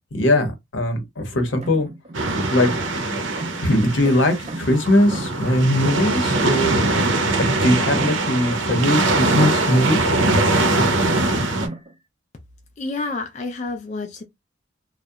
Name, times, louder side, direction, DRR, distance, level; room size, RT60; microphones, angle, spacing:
voice 1, 0.1-1.9 2.5-2.7 3.6-6.9 7.4-10.0, left 1 dB, 85° left, 0.8 m, -20 dB
sound 1, 1.6-3.1 3.4-4.9 5.1-8.4 8.7-10.2 10.5-12.0, right 2 dB, 35° right, 0.4 m, -36 dB
sound 2, 2.1-11.7, right 2 dB, 85° right, 0.6 m, -22 dB
voice 2, 12.8-14.2, left 3 dB, 35° left, 0.4 m, -29 dB
2.7 x 2.1 x 2.2 m
head